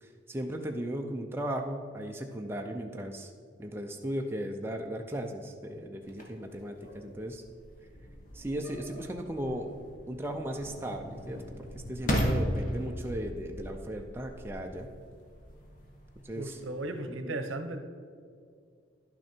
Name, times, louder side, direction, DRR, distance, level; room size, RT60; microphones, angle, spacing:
voice 1, 0.0-3.3 3.6-7.4 8.3-9.7 10.1-14.9 16.2-16.6 17.1-17.4, right 1 dB, 10° right, 2 dB, 0.4 m, -37 dB
sound 1, 6.0-17.0, equal, 40° left, 1.1 m, -37 dB
voice 2, 16.4-17.8, right 2 dB, 75° right, 7 dB, 0.8 m, -36 dB
11.0 x 6.1 x 4.4 m, 2.2 s
head